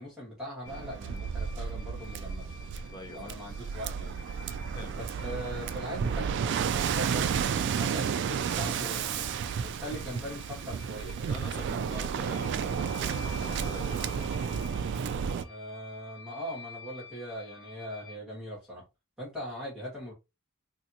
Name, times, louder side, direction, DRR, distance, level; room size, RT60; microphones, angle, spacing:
voice 1, 0.0-2.5 3.1-4.2 4.9-9.3 9.6-11.3 15.4-18.8 19.2-20.1, equal, 5° right, 1.8 m, -41 dB
sound 1, 0.6-18.2, left 4 dB, 70° left, 0.7 m, -51 dB
Waves surf, 0.6-15.4, right 7 dB, 60° right, 0.3 m, -32 dB
voice 2, 2.9-3.3 4.7-5.1 11.3-14.1, left 1 dB, 20° left, 0.7 m, -45 dB
3.3 x 2.6 x 2.8 m
head